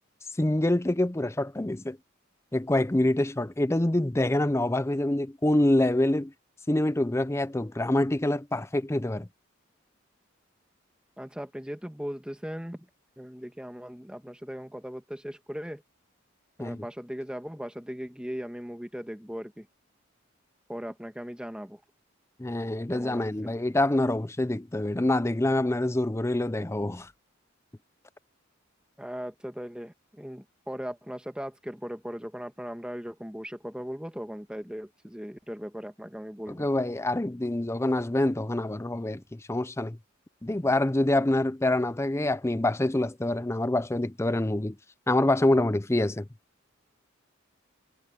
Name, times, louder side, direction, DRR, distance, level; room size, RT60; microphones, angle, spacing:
voice 1, 0.4-2.0 2.5-6.3 6.7-9.3 16.6-16.8 22.4-27.1 36.5-40.0 40.4-44.8 45.1-46.3, left 1 dB, 15° left, 0.5 m, -26 dB
voice 2, 11.2-12.9 13.2-15.8 16.6-19.7 20.7-21.8 22.9-23.5 29.0-36.7, equal, 5° right, 1.4 m, -38 dB
head